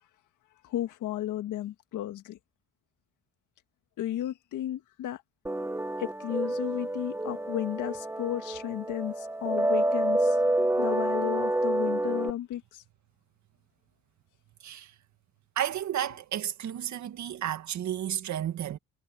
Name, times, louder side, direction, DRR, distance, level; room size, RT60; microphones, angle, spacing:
voice 1, 0.6-2.4 4.0-5.2 6.0-10.4 10.8-12.8, left 12 dB, 85° left, 1.9 m, -33 dB
sound 1, 5.5-12.3, right 1 dB, 10° right, 1.5 m, -28 dB
voice 2, 15.5-18.8, right 11 dB, 70° right, 1.8 m, -32 dB
cardioid pair, 90°, 30 cm